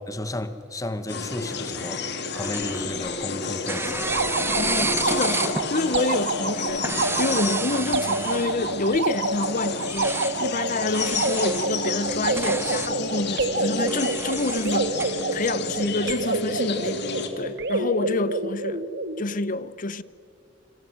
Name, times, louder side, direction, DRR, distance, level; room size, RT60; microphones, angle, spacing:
voice 1, 0.1-4.1, left 1 dB, 15° left, 1.3 m, -33 dB
sound 1, 1.1-17.3, left 4 dB, 60° left, 2.5 m, -31 dB
sound 2, 2.3-3.2 3.7-5.7 6.7-8.7 9.8-10.3 10.9-11.7 12.1-12.9 13.9-15.4, right 3 dB, 10° right, 0.9 m, -31 dB
sound 3, 4.0-19.2, right 2 dB, 60° right, 1.8 m, -28 dB
voice 2, 4.5-6.9 7.2-17.0 17.4-18.8 19.2-20.0, left 2 dB, 45° left, 0.7 m, -28 dB
26.5 x 26.5 x 7.9 m
head